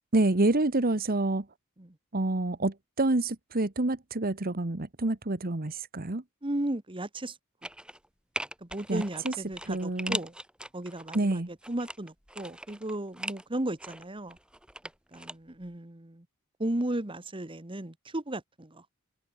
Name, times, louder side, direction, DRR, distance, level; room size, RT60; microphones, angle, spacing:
voice 1, 0.1-1.4 2.1-6.2 8.9-9.3 9.7-10.2 11.1-11.5, right 2 dB, 45° right, 1.3 m, -27 dB
voice 2, 6.4-7.4 8.6-10.3 10.7-14.4 15.1-16.2 16.6-18.8, right 1 dB, 25° right, 1.5 m, -35 dB
sound 1, 7.6-8.1 8.4-11.2 11.6-13.4 13.8-15.3 15.6-15.7, right 1 dB, 5° right, 3.8 m, -39 dB
head